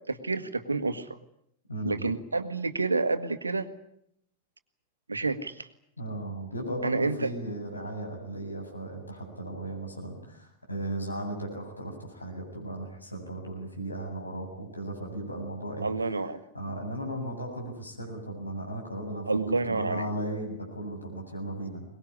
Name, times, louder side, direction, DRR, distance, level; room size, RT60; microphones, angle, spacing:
voice 1, 0.1-1.2 1.8-3.7 5.1-5.7 6.8-7.3 15.8-16.4 19.3-20.1, right 3 dB, 80° right, 10 dB, 1.6 m, -29 dB
voice 2, 1.7-2.0 6.0-15.9 16.5-19.4 19.6-21.8, right 1 dB, 85° left, 1 dB, 7.7 m, -36 dB
23.0 x 20.5 x 9.9 m, 0.71 s
figure-of-eight pair, 90°, 0 cm